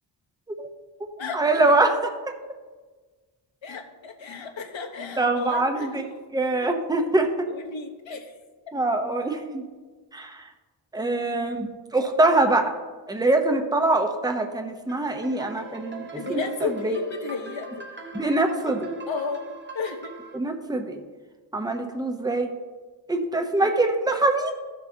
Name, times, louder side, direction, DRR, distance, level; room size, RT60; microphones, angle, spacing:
voice 1, 1.3-2.1 5.2-6.1 6.3-7.5 8.7-9.6 10.1-10.5 10.9-12.7 13.1-17.0 18.1-18.9 20.3-21.0 21.5-22.5 23.1-24.5, right 2 dB, 10° right, 4 dB, 0.8 m, -24 dB
voice 2, 3.6-6.0 6.5-6.8 7.5-8.3 16.1-17.9 19.1-19.5 19.7-20.2, left 5 dB, 80° left, 4 dB, 1.2 m, -33 dB
sound 1, 14.9-20.4, right 1 dB, 25° right, 1.1 m, -39 dB
15.0 x 6.7 x 2.8 m, 1.4 s
wide cardioid pair, 110°, 45 cm